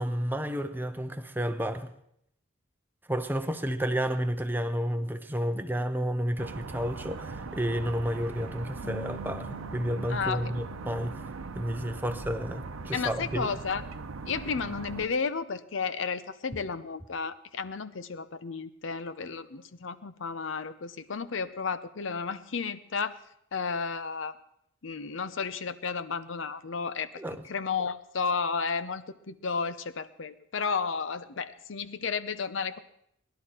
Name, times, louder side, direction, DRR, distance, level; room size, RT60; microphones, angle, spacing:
voice 1, 0.0-1.9 3.1-11.1 11.5-13.5 27.2-27.4, equal, 10° right, 0.7 m, -31 dB
sound 1, 6.4-15.1, right 3 dB, 85° right, 0.8 m, -40 dB
Bass guitar, 8.8-15.1, right 4 dB, 85° left, 3.6 m, -50 dB
voice 2, 10.1-10.4 12.9-13.8 14.3-23.2 23.5-24.4 24.8-32.8, left 5 dB, 65° left, 0.7 m, -33 dB
19.0 x 11.5 x 4.4 m
head